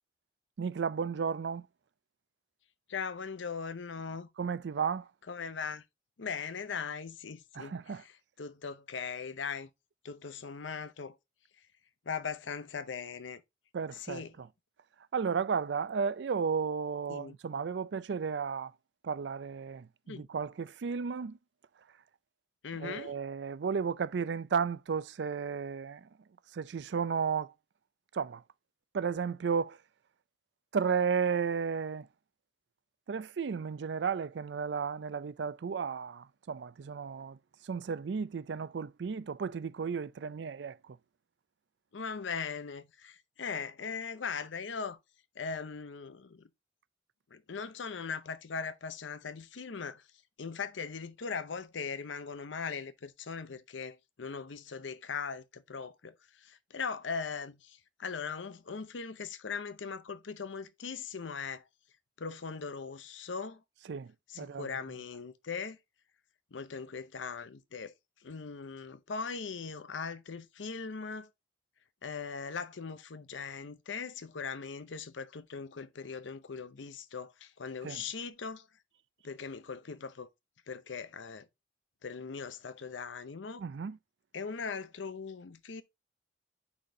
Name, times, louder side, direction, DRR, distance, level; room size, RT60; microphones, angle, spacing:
voice 1, 0.6-1.7 4.4-5.1 7.5-8.0 13.7-14.5 15.1-18.7 19.0-21.4 22.8-26.1 26.5-27.5 28.1-28.4 28.9-29.8 30.7-32.1 33.1-37.4 37.6-41.0 63.9-64.7 77.8-78.0 83.6-84.0, right 6 dB, 70° right, 0.4 m, -33 dB
voice 2, 2.9-4.3 5.3-5.8 6.2-8.1 8.4-9.7 10.0-11.2 12.1-13.4 13.9-14.3 17.1-17.4 20.1-20.3 22.6-23.1 41.9-45.0 45.4-46.5 47.3-50.0 50.4-61.6 62.2-63.6 64.3-65.8 66.5-67.9 68.2-71.3 72.0-78.7 79.2-80.3 80.7-81.5 82.0-83.6 84.3-85.8, left 5 dB, 90° left, 0.7 m, -40 dB
9.5 x 4.2 x 2.7 m
head